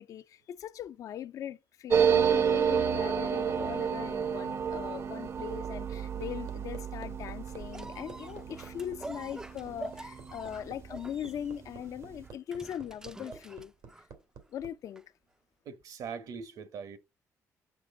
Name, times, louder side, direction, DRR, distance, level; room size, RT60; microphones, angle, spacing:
voice 1, 0.0-13.7 14.5-15.0, left 10 dB, 65° left, 0.5 m, -40 dB
sound 1, 1.9-11.0 11.3-11.4 11.6-12.2, right 7 dB, 45° right, 0.7 m, -30 dB
Hammer, 5.1-14.7 16.1-16.2, right 6 dB, 85° right, 1.9 m, -50 dB
sound 2, 7.7-14.2 15.0-15.1, right 2 dB, 10° right, 0.4 m, -46 dB
voice 2, 15.6-17.0, right 6 dB, 70° right, 1.3 m, -41 dB
6.3 x 6.1 x 3.7 m
cardioid pair, 95°, 6 cm